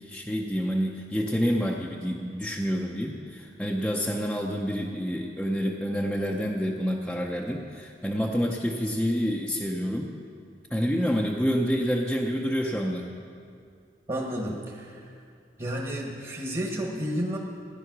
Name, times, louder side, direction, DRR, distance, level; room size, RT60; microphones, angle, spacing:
voice 1, 0.0-10.1 10.7-13.1, equal, 5° left, -2 dB, 0.7 m, -28 dB
voice 2, 14.1-15.2 15.6-17.4, equal, 30° right, -2 dB, 1.4 m, -31 dB
15.5 x 10.5 x 6.1 m, 2.3 s
head